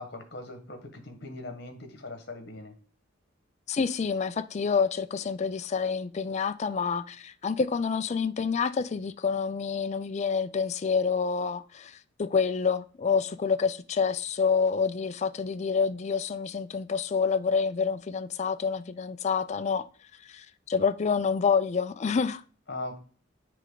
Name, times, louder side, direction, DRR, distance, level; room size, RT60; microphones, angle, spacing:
voice 1, 0.0-2.7 22.7-23.0, left 2 dB, 55° left, 1.3 m, -40 dB
voice 2, 3.7-19.9 20.2-22.4, left 5 dB, 35° left, 0.3 m, -28 dB
9.2 x 3.4 x 3.8 m
head